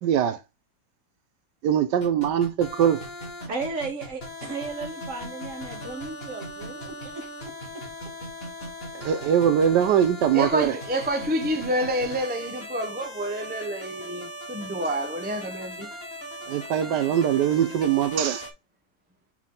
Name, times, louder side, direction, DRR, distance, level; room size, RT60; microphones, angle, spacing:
voice 1, 0.0-0.4 1.6-3.0 8.9-10.8 16.5-18.4, right 9 dB, 80° right, 1.2 m, -22 dB
sound 1, 2.0-18.5, left 1 dB, 35° left, 2.0 m, -39 dB
voice 2, 3.5-7.2 7.7-7.8, right 3 dB, 45° right, 2.1 m, -34 dB
voice 3, 10.3-15.9, equal, 10° right, 0.4 m, -28 dB
5.7 x 4.6 x 3.8 m
omnidirectional pair, 1.9 m